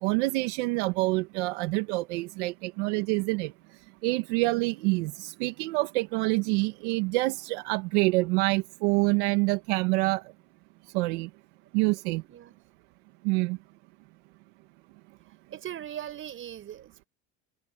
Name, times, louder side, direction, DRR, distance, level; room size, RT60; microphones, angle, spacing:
voice 1, 0.0-3.5 4.0-10.2 10.9-11.3 11.7-12.2 13.2-13.6, right 23 dB, 75° right, 1.7 m, -26 dB
voice 2, 12.2-12.5 15.5-17.1, right 11 dB, 35° right, 6.5 m, -40 dB
cardioid pair, 140°, 34 cm